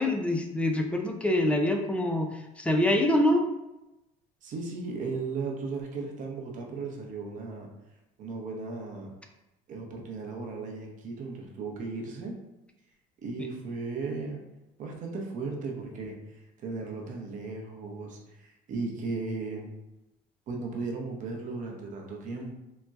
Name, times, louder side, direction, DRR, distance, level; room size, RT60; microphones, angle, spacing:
voice 1, 0.0-3.4, left 1 dB, 5° left, 3 dB, 0.3 m, -25 dB
voice 2, 4.4-7.7 8.2-9.1 9.7-12.4 13.2-14.4 14.8-16.2 16.6-19.7 20.5-22.5, right 4 dB, 50° right, 1 dB, 0.7 m, -36 dB
3.9 x 2.1 x 2.3 m, 0.95 s
cardioid pair, 125°, 17 cm